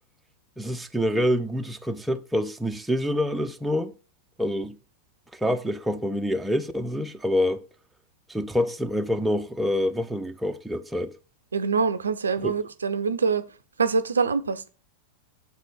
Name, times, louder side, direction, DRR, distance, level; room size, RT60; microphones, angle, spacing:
voice 1, 0.6-3.9 4.4-4.8 5.3-7.6 8.3-11.1 12.4-12.5, equal, 5° right, 0.6 m, -26 dB
voice 2, 11.5-13.4 13.8-14.7, right 5 dB, 75° right, 0.5 m, -24 dB
7.5 x 4.1 x 4.8 m
figure-of-eight pair, 90°, 0 cm